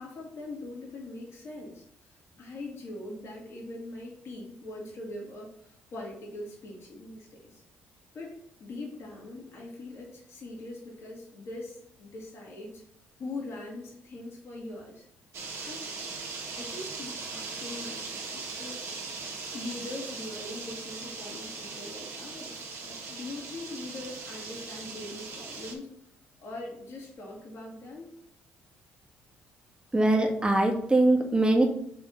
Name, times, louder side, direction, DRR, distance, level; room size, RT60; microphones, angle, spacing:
voice 1, 0.0-1.8 2.4-7.6 8.1-12.8 13.2-15.1 15.7-15.8 16.6-18.9 19.5-25.9 26.4-28.1, left 2 dB, 55° left, -2 dB, 2.2 m, -42 dB
sound 1, 15.3-25.7, right 4 dB, 60° right, 1.4 m, -39 dB
voice 2, 29.9-31.6, right 2 dB, 15° right, 2 dB, 1.4 m, -22 dB
4.8 x 3.6 x 5.4 m, 0.71 s
hypercardioid pair, 55°, 5 cm